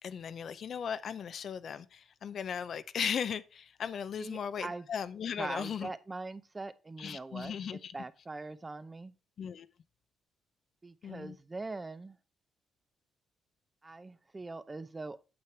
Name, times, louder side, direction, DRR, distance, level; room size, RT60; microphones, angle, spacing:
voice 1, 0.0-5.9 7.0-7.9 9.4-9.7 11.0-11.4, left 7 dB, 55° left, 0.5 m, -37 dB
voice 2, 4.2-4.9 5.4-9.1 10.8-12.2 13.8-15.2, right 3 dB, 20° right, 0.6 m, -42 dB
8.7 x 7.5 x 3.3 m
cardioid pair, 90°, 0 cm